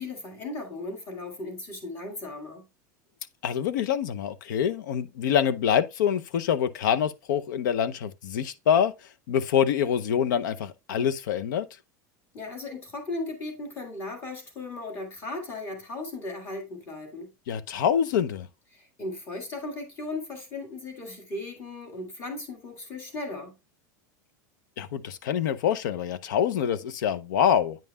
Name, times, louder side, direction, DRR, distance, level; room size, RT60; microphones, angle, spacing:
voice 1, 0.0-2.6 12.3-17.3 18.7-23.5, left 2 dB, 25° left, 1.7 m, -37 dB
voice 2, 3.4-8.9 9.3-11.7 17.5-18.5 24.8-27.8, left 8 dB, 85° left, 0.7 m, -25 dB
9.0 x 5.4 x 2.3 m
supercardioid pair, 175°, 10 cm